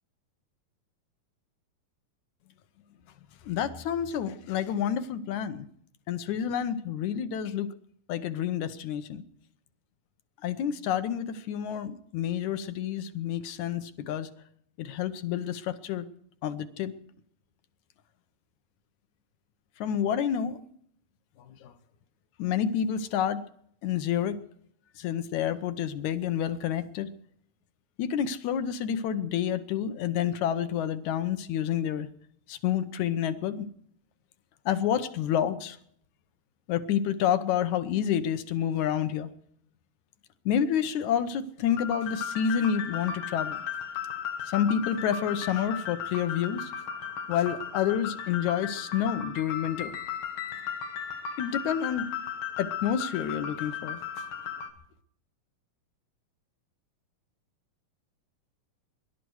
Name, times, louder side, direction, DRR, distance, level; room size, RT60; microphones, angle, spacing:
voice 1, 3.5-5.7 6.1-7.7 8.1-9.2 10.4-14.3 14.8-16.1 16.4-16.9 19.8-20.6 21.5-21.7 22.4-23.4 23.8-24.4 25.0-27.1 28.0-32.1 32.5-33.7 34.7-35.8 36.7-39.3 40.5-43.6 44.5-46.7 47.3-49.9 51.4-52.1 52.6-54.0, left 9 dB, 70° left, 11 dB, 2.1 m, -29 dB
sound 1, 41.7-54.7, left 7 dB, 90° left, 3.5 m, -36 dB
25.5 x 12.0 x 4.7 m, 0.65 s
omnidirectional pair, 4.0 m